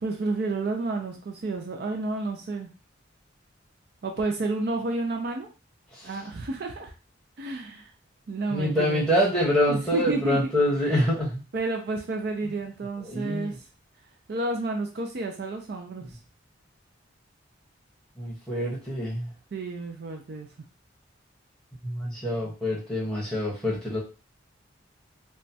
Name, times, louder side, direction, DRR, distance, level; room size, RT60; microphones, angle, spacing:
voice 1, 0.0-2.7 4.0-5.5 6.0-6.9 7.4-7.9 8.3-9.1 9.7-10.4 11.5-13.5 14.3-16.1 19.5-20.5, right 3 dB, 50° right, 3 dB, 0.4 m, -30 dB
voice 2, 8.5-11.4 13.0-13.6 16.0-16.1 18.2-19.3 21.8-24.0, equal, 5° left, -6 dB, 1.0 m, -26 dB
3.0 x 2.2 x 2.7 m, 0.32 s
head